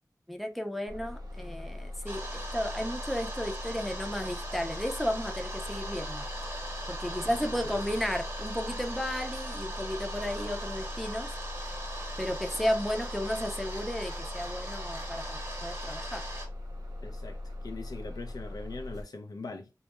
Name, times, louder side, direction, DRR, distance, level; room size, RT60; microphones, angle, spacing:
voice 1, 0.3-6.3 6.9-11.3 12.2-16.2, equal, ahead, 0.5 m, -33 dB
Bus, 0.9-19.0, left 1 dB, 80° right, 0.5 m, -40 dB
sound 1, 2.1-16.5, right 1 dB, 40° right, 0.8 m, -40 dB
voice 2, 7.3-7.8 17.0-19.7, left 3 dB, 70° left, 0.4 m, -42 dB
2.2 x 2.0 x 2.9 m
wide cardioid pair, 70°, 7 cm